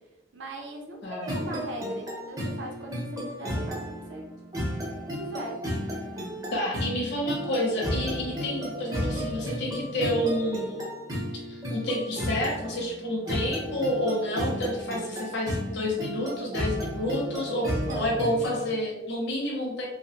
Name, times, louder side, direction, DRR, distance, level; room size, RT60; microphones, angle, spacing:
voice 1, 0.3-4.2 4.5-4.8 5.2-5.6 17.6-18.2, right 1 dB, 65° right, 1 dB, 0.5 m, -40 dB
voice 2, 1.0-1.3 6.5-10.9 11.5-17.7 17.9-19.8, left 1 dB, 60° left, -3 dB, 0.6 m, -29 dB
sound 1, 1.3-18.7, equal, 20° right, 0.5 m, -33 dB
2.6 x 2.0 x 2.7 m, 1.1 s
head